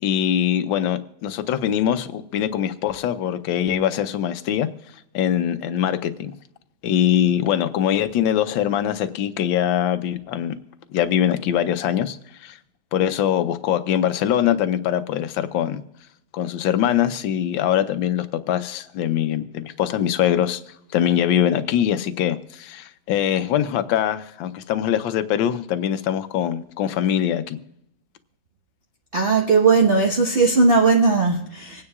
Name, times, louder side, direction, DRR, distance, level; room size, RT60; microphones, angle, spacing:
voice 1, 0.0-4.7 5.1-6.3 6.8-10.5 10.9-12.6 12.9-15.8 16.3-20.6 20.9-27.6, left 10 dB, 80° left, 1.5 m, -22 dB
voice 2, 29.1-31.8, right 4 dB, 35° right, 1.1 m, -18 dB
26.0 x 9.6 x 2.4 m
omnidirectional pair, 2.1 m